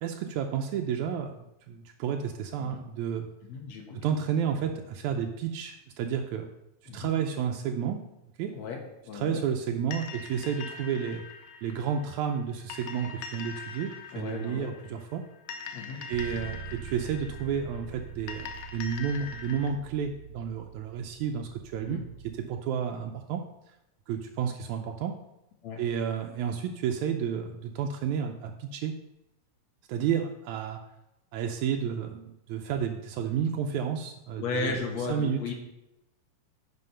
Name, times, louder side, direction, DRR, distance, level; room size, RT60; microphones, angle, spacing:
voice 1, 0.0-3.3 3.9-6.5 6.9-8.0 8.4-8.5 9.1-11.2 11.6-15.2 16.1-23.4 24.1-25.1 25.8-28.9 29.9-30.8 31.3-34.8 35.1-35.4, right 7 dB, 80° right, 4 dB, 2.0 m, -31 dB
voice 2, 3.5-4.0 6.9-7.1 8.5-8.8 9.1-9.4 14.1-14.7 15.7-16.0 21.8-22.0 25.6-25.8 34.4-35.5, left 4 dB, 65° left, 2 dB, 2.6 m, -35 dB
sound 1, 9.9-19.7, left 6 dB, 90° left, 2.2 m, -43 dB
Bass guitar, 16.1-22.4, right 6 dB, 25° right, 1.4 m, -45 dB
9.9 x 4.6 x 5.6 m, 0.89 s
omnidirectional pair, 3.3 m